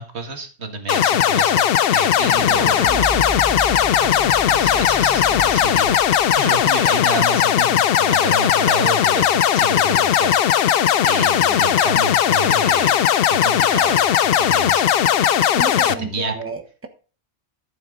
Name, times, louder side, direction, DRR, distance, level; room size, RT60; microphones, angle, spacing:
voice 1, 0.0-10.7 11.0-13.0 13.3-14.9 15.9-16.3, right 3 dB, 80° right, 6 dB, 2.0 m, -30 dB
sound 1, 0.9-15.9, left 10 dB, 65° left, 0.8 m, -17 dB
sound 2, 2.1-7.4, equal, 15° left, 1.4 m, -33 dB
voice 2, 15.5-16.9, right 3 dB, 10° right, 6 dB, 1.2 m, -30 dB
13.0 x 7.4 x 3.9 m, 0.39 s
omnidirectional pair, 1.1 m